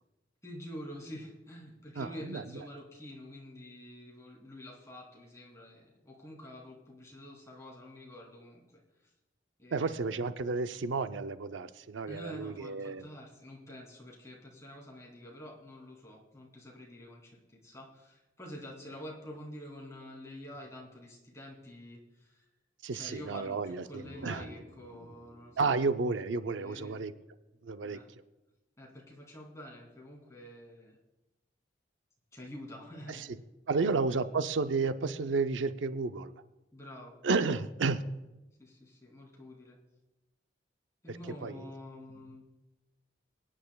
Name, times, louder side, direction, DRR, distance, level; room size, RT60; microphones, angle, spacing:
voice 1, 0.4-8.8 9.6-10.2 12.1-22.4 22.9-25.7 26.5-26.9 27.8-28.1 28.8-31.0 32.3-33.3 33.8-33.9 36.7-37.5 38.6-39.8 41.0-42.4, left 1 dB, 15° left, -3 dB, 2.8 m, -47 dB
voice 2, 2.0-2.4 9.7-13.1 22.8-24.5 25.6-27.1 27.6-28.0 33.1-33.3 33.7-36.3 37.2-38.0 41.4-41.7, right 4 dB, 90° right, 10 dB, 0.5 m, -32 dB
sound 1, 23.8-27.4, equal, 70° right, 1.4 m, -53 dB
24.0 x 9.9 x 2.3 m, 1.0 s
head